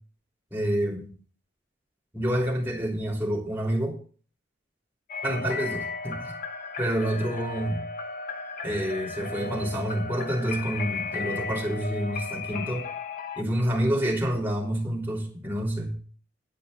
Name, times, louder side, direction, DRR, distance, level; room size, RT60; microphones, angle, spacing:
voice 1, 0.5-1.1 2.1-4.0 5.2-6.3 6.8-7.8 8.6-12.9 13.4-15.9, equal, 10° right, -1 dB, 3.4 m, -28 dB
sound 1, 5.1-13.4, left 4 dB, 45° left, 1.1 m, -35 dB
11.5 x 5.4 x 8.2 m, 0.41 s
head